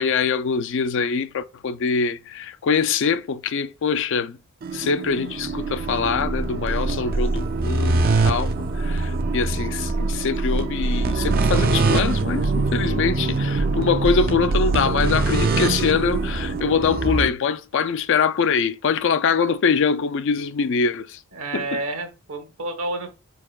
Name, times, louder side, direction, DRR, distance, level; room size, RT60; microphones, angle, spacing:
voice 1, 0.0-4.4 4.7-8.5 8.7-21.2 21.5-21.8, left 5 dB, 60° left, 0.4 m, -23 dB
sound 1, 4.6-17.3, right 3 dB, 45° right, 0.4 m, -23 dB
voice 2, 21.3-23.1, right 2 dB, 75° right, 1.2 m, -29 dB
4.7 x 4.4 x 2.3 m
head